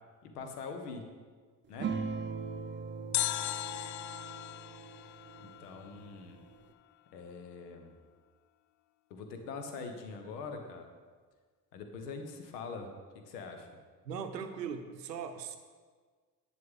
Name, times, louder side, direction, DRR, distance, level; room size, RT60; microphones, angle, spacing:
voice 1, 0.2-1.0 1.7-1.9 5.4-6.4 7.1-8.0 9.1-10.9 11.7-13.7, left 4 dB, 70° left, 5 dB, 1.2 m, -43 dB
sound 1, 1.8-6.7, right 5 dB, 25° right, 0.6 m, -41 dB
sound 2, 3.1-6.2 6.5-6.6, left 14 dB, 40° left, 0.4 m, -37 dB
voice 2, 14.0-15.6, right 6 dB, 80° right, 8 dB, 0.7 m, -39 dB
11.0 x 8.0 x 3.6 m, 1.5 s
figure-of-eight pair, 45°, 49 cm